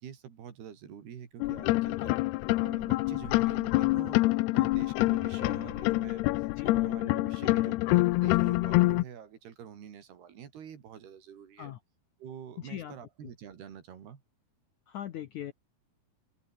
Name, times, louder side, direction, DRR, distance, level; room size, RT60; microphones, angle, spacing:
voice 1, 0.0-2.2 2.6-4.2 4.5-11.7 12.2-14.2, right 8 dB, 75° right, 4.9 m, -46 dB
sound 1, 1.4-9.0, left 20 dB, 85° left, 2.7 m, -26 dB
voice 2, 12.6-13.0 14.9-15.5, left 11 dB, 65° left, 2.0 m, -40 dB
open air
omnidirectional pair, 4.7 m